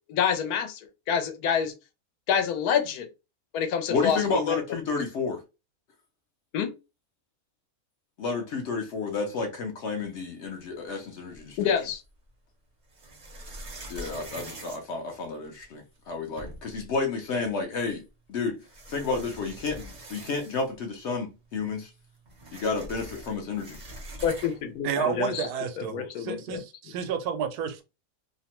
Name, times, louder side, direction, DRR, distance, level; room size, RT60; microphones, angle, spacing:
voice 1, 0.1-0.8 1.1-1.7 2.3-3.1 3.5-4.6 6.5-6.7 11.6-12.0 24.2-25.5 25.8-26.6, left 7 dB, 80° left, 1.1 m, -27 dB
voice 2, 3.9-5.4 8.2-11.6 13.9-18.0 18.3-18.6 18.9-21.9 22.5-23.8 25.0-25.2, left 4 dB, 65° left, 0.7 m, -31 dB
sound 1, 11.3-12.1 12.9-15.6 16.1-16.2 16.4-16.8 17.9-18.0 18.6-20.8 21.1-21.2 21.5-24.7, right 1 dB, 45° right, 0.6 m, -43 dB
voice 3, 24.8-27.8, right 7 dB, 85° right, 1.1 m, -31 dB
2.8 x 2.1 x 2.9 m
omnidirectional pair, 1.6 m